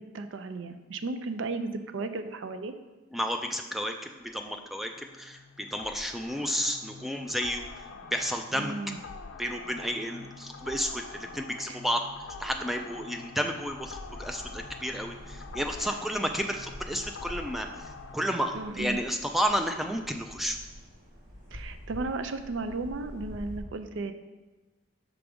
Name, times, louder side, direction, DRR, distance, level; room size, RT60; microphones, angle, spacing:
voice 1, 0.0-2.7 8.5-9.0 11.7-11.8 18.5-19.0 21.5-24.1, right 3 dB, 65° right, 9 dB, 0.4 m, -35 dB
voice 2, 3.1-7.6 8.1-8.7 9.4-12.0 12.4-20.6, equal, ahead, 4 dB, 0.3 m, -32 dB
sound 1, 4.2-18.7, left 4 dB, 70° left, 0.4 m, -46 dB
sound 2, 13.7-23.6, equal, 40° right, 1.6 m, -46 dB
6.0 x 3.4 x 5.1 m, 1.2 s
head